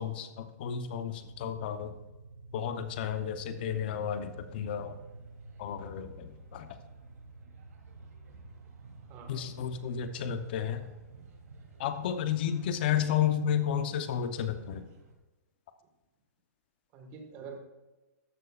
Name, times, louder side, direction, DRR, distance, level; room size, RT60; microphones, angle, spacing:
voice 1, 0.0-1.9 2.5-5.0 5.6-6.8 9.3-10.8 11.8-14.9, left 9 dB, 35° left, 9 dB, 0.9 m, -32 dB
sound 1, 1.1-12.8, right 3 dB, 80° right, 1.8 m, -51 dB
sound 2, 3.5-15.1, right 2 dB, 60° right, 3.1 m, -54 dB
voice 2, 9.1-9.6 16.9-17.6, right 5 dB, 20° right, 3 dB, 1.7 m, -46 dB
13.5 x 11.0 x 2.5 m, 1.1 s
hypercardioid pair, 175°, 9 cm